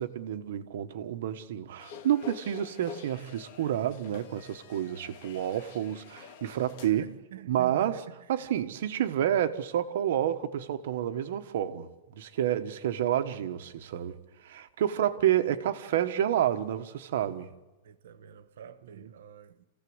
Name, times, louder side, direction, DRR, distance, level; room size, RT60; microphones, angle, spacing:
voice 1, 0.0-7.1 7.5-17.5 18.9-19.1, right 11 dB, 60° right, 1.3 m, -29 dB
sound 1, 1.8-6.9, left 7 dB, 45° left, 2.1 m, -47 dB
voice 2, 6.8-8.1 17.8-19.7, right 10 dB, 85° right, 1.2 m, -47 dB
28.0 x 16.0 x 8.0 m
supercardioid pair, 175°, 0 cm